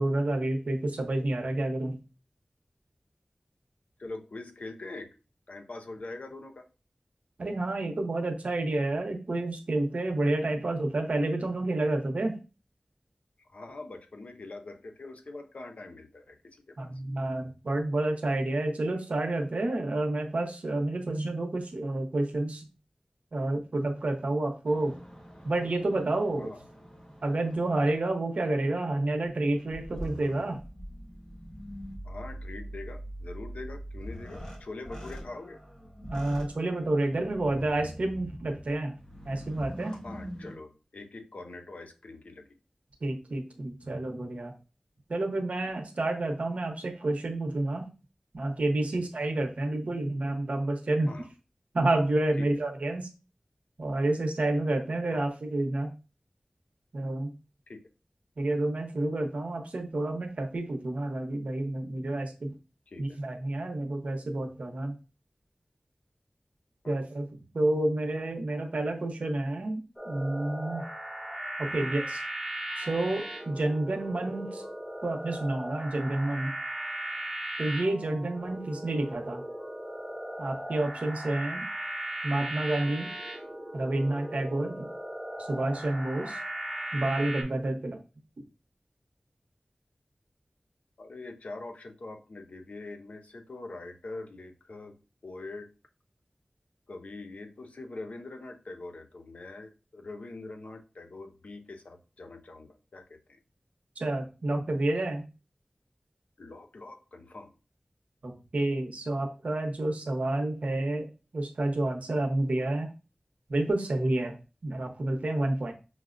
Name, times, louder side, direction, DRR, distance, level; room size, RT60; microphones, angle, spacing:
voice 1, 0.0-2.0 7.4-12.4 16.8-22.6 23.3-25.0 25.4-26.5 27.2-30.6 36.0-38.9 39.2-39.9 43.0-44.5 45.1-47.9 48.3-51.1 51.7-53.1 53.8-55.9 56.9-57.3 58.4-62.5 63.0-64.9 66.9-67.3 67.5-70.9 71.6-72.2 72.8-74.6 75.0-76.5 77.6-79.4 80.4-81.7 82.2-83.1 83.7-84.9 85.5-86.4 86.9-88.0 104.0-105.3 108.2-111.1 111.3-112.9 113.5-114.4 114.6-115.7, right 2 dB, 85° right, 3 dB, 0.7 m, -29 dB
voice 2, 4.0-5.2 5.5-6.7 13.4-17.0 26.4-26.6 32.0-35.6 40.0-42.6 48.9-49.1 51.1-51.3 52.4-52.6 55.1-55.2 57.7-57.9 62.9-63.2 66.8-67.0 71.8-72.0 78.5-78.6 91.0-95.0 95.2-95.7 96.9-103.4 106.4-107.5, left 2 dB, 85° left, 6 dB, 0.5 m, -43 dB
sound 1, 24.6-28.4 29.0-40.5, equal, 35° left, 1.2 m, -44 dB
sound 2, 70.0-87.4, right 1 dB, ahead, 0.9 m, -38 dB
5.8 x 2.1 x 2.4 m, 0.31 s
wide cardioid pair, 70°, 2 cm